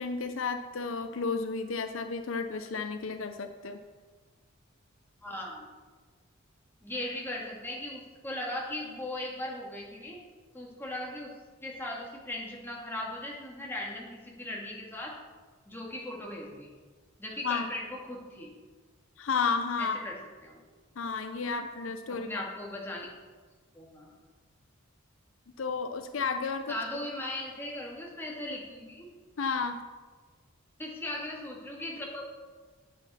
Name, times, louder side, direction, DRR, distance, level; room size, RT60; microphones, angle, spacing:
voice 1, 0.0-3.8 17.4-17.7 19.2-20.0 21.0-22.4 25.6-26.7 29.4-29.8, left 5 dB, 75° left, 8 dB, 0.6 m, -32 dB
voice 2, 5.2-5.7 6.8-10.2 10.5-11.3 11.6-15.1 15.7-16.7 17.2-18.5 19.8-20.2 20.4-20.6 22.2-23.1 23.7-24.1 26.7-29.1 30.8-32.2, left 1 dB, 10° left, -3 dB, 1.9 m, -38 dB
11.0 x 8.1 x 4.3 m, 1.4 s
head